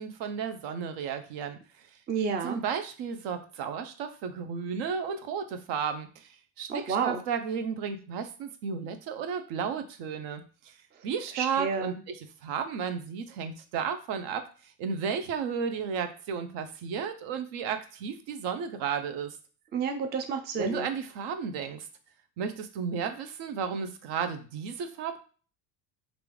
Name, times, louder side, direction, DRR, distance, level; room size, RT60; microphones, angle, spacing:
voice 1, 0.0-1.6 2.4-10.7 11.0-14.5 14.8-19.4 20.6-21.9 22.4-25.2, right 6 dB, 65° right, 8 dB, 0.7 m, -33 dB
voice 2, 2.1-2.6 6.7-7.2 11.3-12.0 19.7-20.9, right 5 dB, 25° right, 6 dB, 0.4 m, -30 dB
3.3 x 2.5 x 3.1 m, 0.39 s
supercardioid pair, 95°, 47 cm